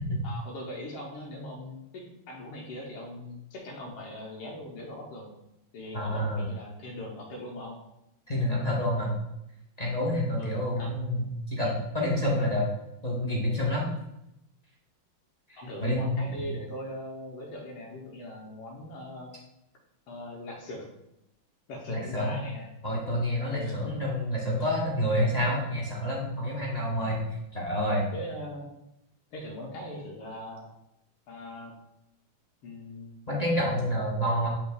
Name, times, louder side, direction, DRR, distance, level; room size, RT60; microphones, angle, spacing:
voice 1, 0.2-5.3 5.7-7.8 8.5-8.7 10.4-10.9 15.6-19.3 20.1-20.9 21.7-22.7 23.5-23.8 24.6-24.7 28.1-28.7 29.3-30.6 31.3-31.7 32.6-33.2, left 1 dB, 80° left, -2 dB, 1.9 m, -40 dB
voice 2, 5.9-6.4 8.3-9.2 9.8-12.6 13.0-13.9 15.5-16.1 21.9-22.4 22.8-27.2 27.5-28.1 33.3-34.5, equal, 25° left, -3 dB, 1.1 m, -28 dB
8.7 x 5.5 x 2.4 m, 0.83 s
omnidirectional pair, 2.3 m